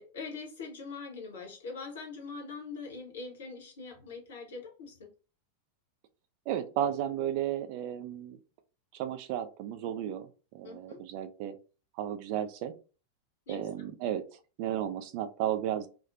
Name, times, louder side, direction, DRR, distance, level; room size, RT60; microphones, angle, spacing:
voice 1, 0.0-5.1 10.6-11.0 13.5-13.7, left 4 dB, 60° left, 1 dB, 0.8 m, -43 dB
voice 2, 6.5-8.4 8.9-11.6 12.0-12.7 13.5-15.9, right 10 dB, 45° right, 9 dB, 0.3 m, -34 dB
2.5 x 2.0 x 2.5 m, 0.34 s
figure-of-eight pair, 90°, 0 cm